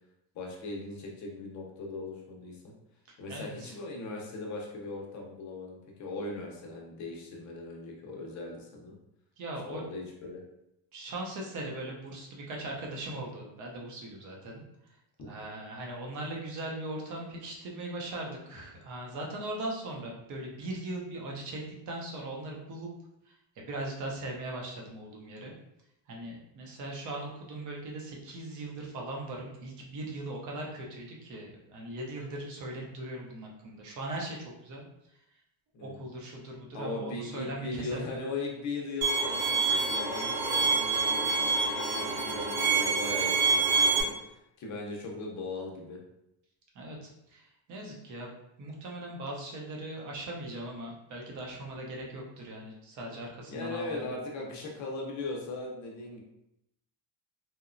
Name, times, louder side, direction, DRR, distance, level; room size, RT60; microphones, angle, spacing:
voice 1, 0.3-2.7 3.2-8.9 9.6-10.4 15.2-15.6 35.7-36.1 36.7-46.0 53.5-56.2, left 3 dB, 40° left, 0 dB, 0.6 m, -39 dB
voice 2, 3.3-3.7 9.4-9.8 10.9-14.6 15.3-22.9 23.6-25.5 26.1-34.4 34.6-34.8 35.8-38.1 46.8-47.4 47.7-54.0, right 1 dB, 40° right, -1 dB, 0.6 m, -39 dB
Bowed string instrument, 39.0-44.0, right 4 dB, 65° right, 0.8 m, -27 dB
2.8 x 2.1 x 2.5 m, 0.83 s
cardioid pair, 165°, 47 cm